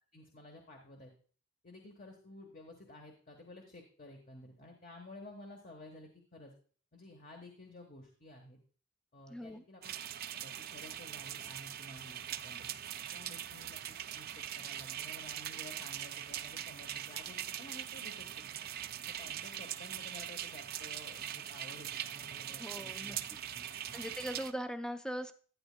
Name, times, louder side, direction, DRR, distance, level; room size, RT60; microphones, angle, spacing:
voice 1, 0.1-1.1 1.6-6.5 6.9-8.6 9.1-9.9 10.3-12.7 13.1-18.3 18.5-18.7 19.1-23.2 23.5-23.9, left 1 dB, 45° left, 3 dB, 1.2 m, -53 dB
voice 2, 9.3-9.6 22.6-23.4 23.6-25.3, equal, 5° left, 8 dB, 0.5 m, -41 dB
sound 1, 9.8-24.5, right 11 dB, 50° right, 0.4 m, -42 dB
11.5 x 9.4 x 2.2 m, 0.42 s
head